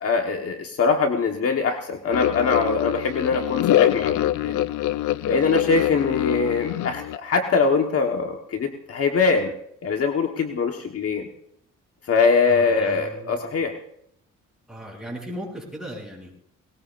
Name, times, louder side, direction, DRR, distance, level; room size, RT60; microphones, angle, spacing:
voice 1, 0.0-4.6 5.3-9.5 9.8-11.3 12.1-13.8, left 4 dB, 50° left, 3 dB, 1.4 m, -22 dB
sound 1, 2.1-7.2, left 13 dB, 85° left, 0.6 m, -24 dB
voice 2, 12.5-13.5 14.7-16.3, equal, ahead, -3 dB, 7.3 m, -37 dB
20.5 x 19.0 x 2.6 m, 0.70 s
cardioid pair, 90°, 30 cm